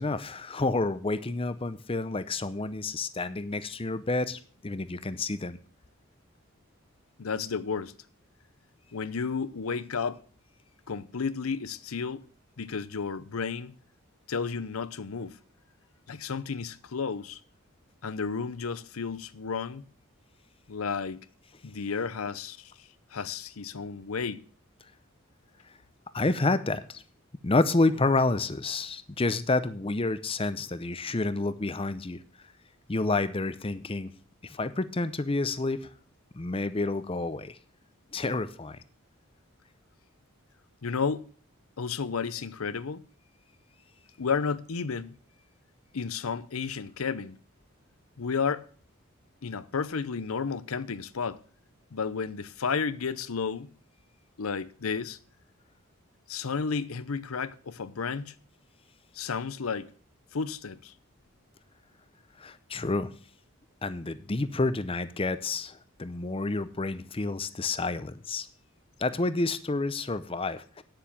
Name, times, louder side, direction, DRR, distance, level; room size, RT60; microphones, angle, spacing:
voice 1, 0.0-5.6 26.1-27.0 27.4-32.2 32.9-34.1 34.4-35.9 36.4-37.6 38.1-38.8 62.4-63.1 63.8-68.5 69.0-70.8, left 2 dB, 25° left, 0.6 m, -29 dB
voice 2, 7.2-7.9 8.9-10.2 10.9-12.2 12.6-13.7 14.3-15.4 16.1-17.4 18.0-19.8 20.7-21.2 21.6-24.4 40.8-41.3 41.8-43.0 44.2-45.2 45.9-47.4 48.2-48.6 49.4-51.4 51.9-53.7 54.4-55.2 56.3-58.3 59.1-59.9 60.3-60.9, left 5 dB, 85° left, 0.7 m, -32 dB
9.7 x 7.0 x 7.2 m
head